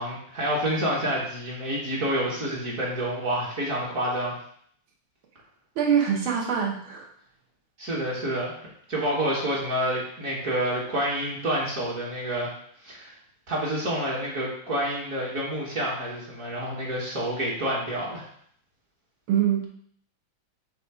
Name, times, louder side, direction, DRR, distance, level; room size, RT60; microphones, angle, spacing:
voice 1, 0.0-4.4 7.8-8.5 8.9-12.5 12.8-13.1 13.5-18.3, right 1 dB, 45° right, -5 dB, 1.6 m, -28 dB
voice 2, 5.8-7.1 19.3-19.7, right 8 dB, 80° right, -1 dB, 1.9 m, -24 dB
6.8 x 3.0 x 4.8 m, 0.63 s
omnidirectional pair, 2.2 m